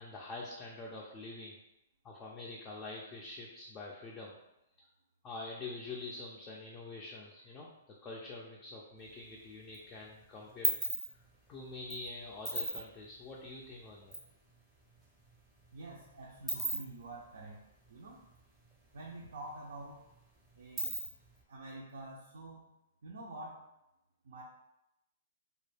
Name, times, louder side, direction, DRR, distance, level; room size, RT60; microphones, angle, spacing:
voice 1, 0.0-1.6 2.0-4.3 5.2-7.7 8.0-10.7 11.5-14.2, left 3 dB, 25° left, -3 dB, 0.4 m, -45 dB
sound 1, 9.0-9.8 10.1-14.3 14.6-14.7 14.9-18.7 19.0-19.1 19.5-21.4, right 2 dB, 15° right, 0.6 m, -38 dB
voice 2, 15.7-17.6 17.9-18.2 18.9-20.0 20.6-20.9 21.5-22.6 23.0-23.6 24.2-24.4, right 2 dB, 70° right, -3 dB, 0.4 m, -47 dB
2.2 x 2.0 x 3.2 m, 0.88 s
hypercardioid pair, 135°, 0 cm